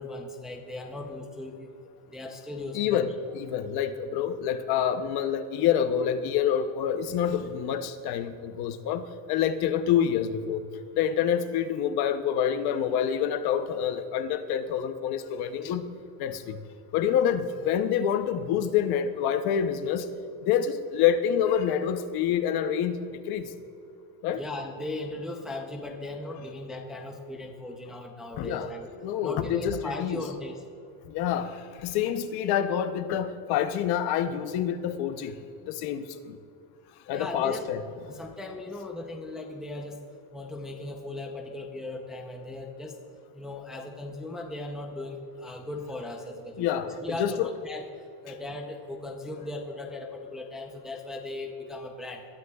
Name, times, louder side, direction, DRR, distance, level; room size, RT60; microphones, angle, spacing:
voice 1, 0.0-1.7 2.1-3.0 24.3-28.9 29.2-30.6 37.1-37.7 38.1-40.0 40.3-42.9 43.3-47.9 48.2-52.2, left 2 dB, ahead, 1 dB, 0.5 m, -38 dB
voice 2, 2.7-3.1 3.4-10.6 11.0-15.9 16.2-16.6 16.9-20.1 20.4-23.5 24.2-24.4 28.4-28.7 29.0-30.2 31.1-31.5 31.8-35.4 35.7-36.4 37.1-37.8 46.6-47.5, left 9 dB, 50° left, 9 dB, 0.8 m, -27 dB
21.0 x 12.5 x 2.3 m, 2.6 s
cardioid pair, 175°, 48 cm